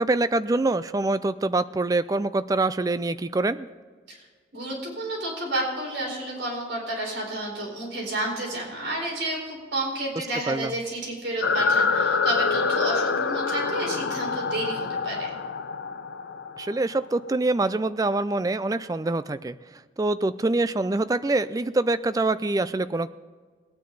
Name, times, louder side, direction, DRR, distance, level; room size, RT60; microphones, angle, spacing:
voice 1, 0.0-3.7 10.2-10.7 16.6-19.6 20.0-23.1, right 2 dB, 20° right, 14 dB, 0.3 m, -25 dB
voice 2, 4.5-15.3, right 1 dB, 75° right, -1 dB, 4.4 m, -31 dB
sound 1, 11.4-17.3, left 5 dB, 80° left, 0.6 m, -26 dB
19.5 x 9.4 x 4.0 m, 1.5 s
head